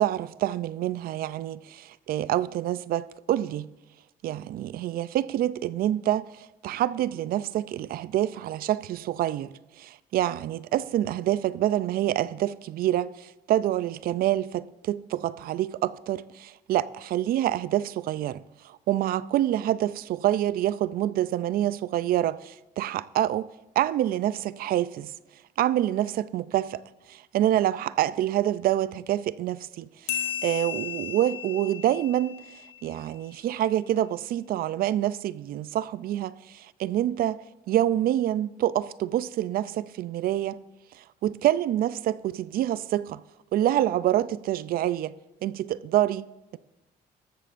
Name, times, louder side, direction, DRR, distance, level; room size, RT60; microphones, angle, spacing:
voice 1, 0.0-3.7 4.2-23.5 23.8-25.1 25.6-26.8 27.1-32.4 32.8-37.4 37.7-40.6 40.9-43.2 43.5-45.1 45.4-46.3, right 12 dB, 60° right, 0.4 m, -27 dB
sound 1, 30.1-33.1, left 10 dB, 90° left, 1.5 m, -35 dB
17.0 x 13.5 x 2.6 m
cardioid pair, 110°, 17 cm